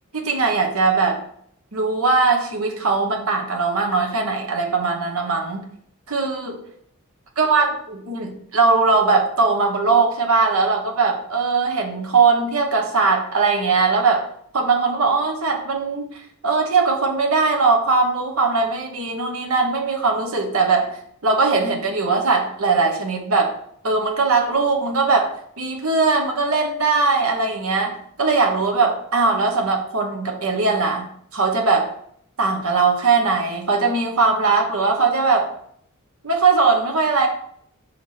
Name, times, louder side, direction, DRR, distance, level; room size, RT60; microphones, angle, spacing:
voice 1, 0.1-1.2 1.7-5.6 6.1-6.6 7.4-14.3 14.5-23.5 23.8-31.1 31.3-31.9 32.4-35.5 36.2-37.3, right 4 dB, 85° right, 2 dB, 1.1 m, -20 dB
6.2 x 4.5 x 4.2 m, 0.66 s
head